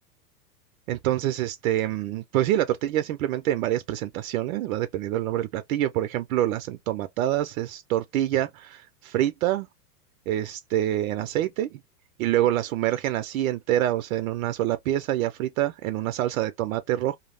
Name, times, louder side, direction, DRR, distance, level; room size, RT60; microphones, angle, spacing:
voice 1, 0.9-9.7 10.3-11.8 12.2-17.2, right 13 dB, 60° right, 0.5 m, -26 dB
2.4 x 2.0 x 3.2 m
supercardioid pair, 135°, 48 cm